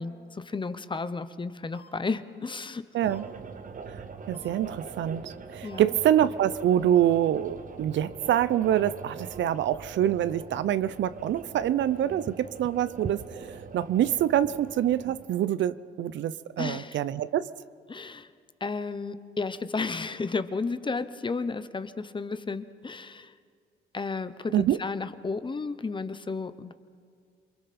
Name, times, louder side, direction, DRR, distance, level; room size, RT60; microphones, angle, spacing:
voice 1, 0.0-2.8 5.6-5.9 16.6-17.0 17.9-18.3 18.6-23.3 23.9-26.7, left 4 dB, 25° left, 12 dB, 0.9 m, -33 dB
sound 1, 1.7-1.9 3.0-3.2 4.3-4.5 5.6-5.8 6.9-7.0, left 3 dB, 50° left, 3.8 m, -52 dB
voice 2, 2.9-3.3 3.9-4.0 4.3-17.5 24.5-24.8, right 11 dB, 70° right, 16 dB, 0.6 m, -26 dB
sound 2, 3.0-15.3, right 5 dB, 40° right, 1.2 m, -42 dB
28.5 x 22.0 x 4.3 m, 2.2 s
cardioid pair, 90°, 20 cm